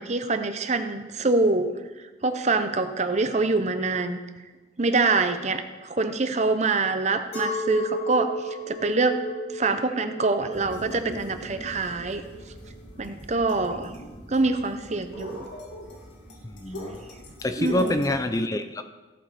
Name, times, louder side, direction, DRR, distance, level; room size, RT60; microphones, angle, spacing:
voice 1, 0.0-1.7 2.2-4.2 4.8-9.2 9.5-12.2 13.0-13.9 14.3-15.5 17.6-17.9, right 3 dB, 40° right, 0.8 m, -25 dB
Chink clink, 7.3-12.8, left 1 dB, 40° left, 3.8 m, -34 dB
sound 1, 10.5-18.2, equal, 80° left, 2.3 m, -42 dB
voice 2, 16.4-17.1 17.4-18.9, left 1 dB, 20° left, 0.5 m, -27 dB
16.5 x 8.2 x 4.2 m
head